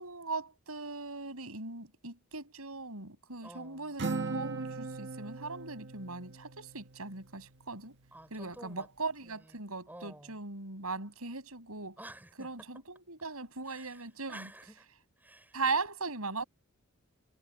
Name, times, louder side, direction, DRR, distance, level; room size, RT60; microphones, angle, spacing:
voice 1, 0.0-7.9 8.3-12.0 12.4-14.5 15.5-16.4, right 3 dB, 75° right, 6.4 m, -39 dB
voice 2, 3.4-4.0 8.1-8.9 9.2-10.4 12.0-12.8 13.6-14.9 15.2-15.6, right 1 dB, 10° right, 5.0 m, -51 dB
Acoustic guitar, 4.0-7.6, right 3 dB, 55° right, 1.6 m, -39 dB
head